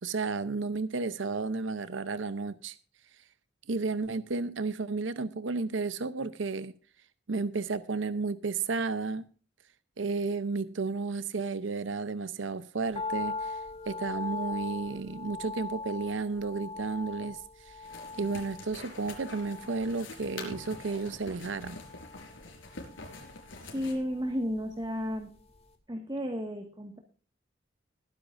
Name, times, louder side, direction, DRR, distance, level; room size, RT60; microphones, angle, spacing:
voice 1, 0.0-2.8 3.7-6.7 7.3-9.3 10.0-13.6 13.9-17.4 17.7-17.8 18.2-21.8, right 4 dB, 75° right, 0.7 m, -32 dB
sound 1, 12.9-25.2 25.5-25.6, left 3 dB, 35° left, 2.4 m, -41 dB
sound 2, 17.8-23.9, left 2 dB, 90° left, 4.4 m, -46 dB
voice 2, 23.6-25.3 25.9-27.0, equal, 20° right, 1.7 m, -33 dB
21.0 x 10.0 x 2.6 m
head